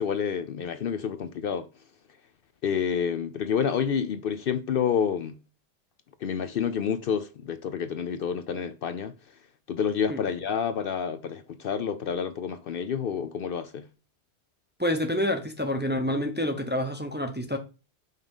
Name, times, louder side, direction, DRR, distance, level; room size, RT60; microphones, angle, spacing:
voice 1, 0.0-1.7 2.6-5.4 6.2-9.1 9.7-13.9, left 7 dB, 60° left, 0.7 m, -29 dB
voice 2, 14.8-17.6, left 1 dB, 10° right, 0.7 m, -28 dB
5.5 x 3.7 x 5.3 m
omnidirectional pair, 1.2 m